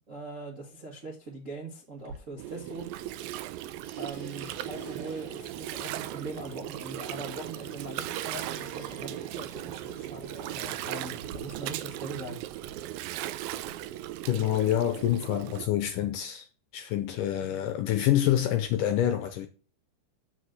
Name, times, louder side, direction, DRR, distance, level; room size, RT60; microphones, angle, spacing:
voice 1, 0.0-2.9 4.0-12.4, right 2 dB, 45° right, 1.0 m, -41 dB
sound 1, 2.0-2.9 3.2-10.0 10.7-11.4, right 5 dB, 60° right, 2.8 m, -51 dB
Gurgling, 2.4-15.7, right 14 dB, 80° right, 2.2 m, -37 dB
sound 2, 4.3-11.4, left 2 dB, 35° left, 2.3 m, -52 dB
voice 2, 14.3-16.5 16.7-19.5, left 12 dB, 75° left, 2.0 m, -27 dB
7.9 x 6.0 x 8.0 m
omnidirectional pair, 4.5 m